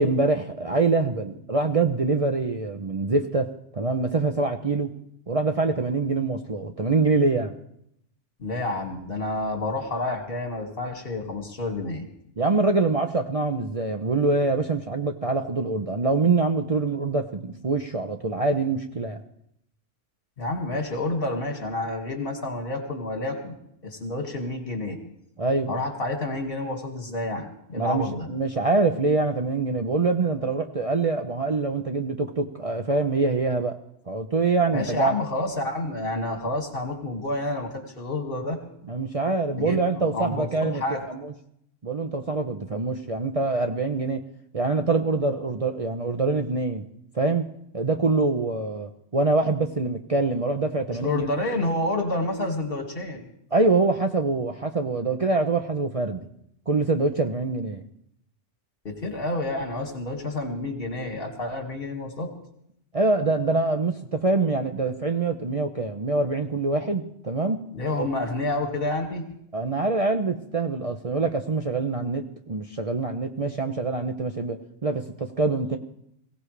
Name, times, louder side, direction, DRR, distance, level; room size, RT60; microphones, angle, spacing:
voice 1, 0.0-4.9 5.3-7.5 12.4-19.2 25.4-25.7 27.8-33.8 34.1-35.1 38.9-40.8 41.1-41.3 41.8-44.2 44.5-46.8 47.1-47.5 47.7-51.3 53.5-56.3 56.7-57.8 62.9-67.6 67.9-68.1 69.5-75.8, right 3 dB, 35° right, 5 dB, 0.7 m, -25 dB
voice 2, 8.4-12.0 20.4-23.6 23.8-25.0 25.7-28.3 34.7-38.6 39.6-39.8 40.1-41.1 50.9-53.2 58.8-62.3 67.7-69.2, left 2 dB, 55° left, 2 dB, 2.5 m, -29 dB
22.5 x 16.5 x 3.3 m, 0.75 s
omnidirectional pair, 1.2 m